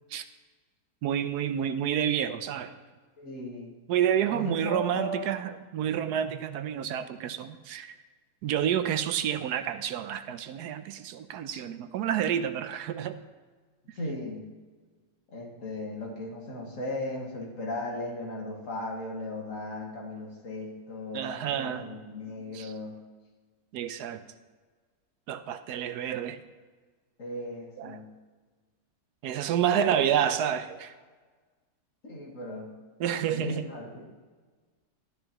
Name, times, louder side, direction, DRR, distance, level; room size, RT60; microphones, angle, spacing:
voice 1, 1.0-2.7 3.9-7.9 8.4-13.2 21.1-21.9 22.5-22.7 23.7-24.2 25.3-26.4 27.8-28.0 29.2-30.9 33.0-33.7, right 9 dB, 85° right, 11 dB, 1.2 m, -29 dB
voice 2, 3.2-3.7 4.3-5.3 13.9-14.5 15.3-23.0 27.2-28.1 32.0-32.7 33.3-34.1, left 1 dB, 55° left, -1 dB, 2.2 m, -37 dB
12.5 x 10.5 x 3.0 m, 1.4 s
omnidirectional pair, 1.6 m